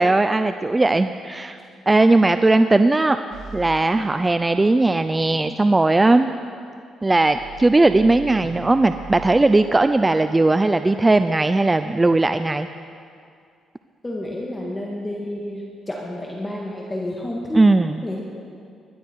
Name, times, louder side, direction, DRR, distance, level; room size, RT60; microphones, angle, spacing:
voice 1, 0.0-1.6 1.9-3.2 3.5-6.3 7.0-12.7 17.5-18.0, right 2 dB, 20° right, 10 dB, 0.4 m, -18 dB
sound 1, 3.3-3.8 7.3-9.4, right 7 dB, 70° right, 2.1 m, -39 dB
voice 2, 14.0-17.6 18.0-18.2, left 1 dB, 15° left, -3 dB, 2.0 m, -30 dB
21.0 x 12.0 x 4.7 m, 2.3 s
cardioid pair, 90°, 0 cm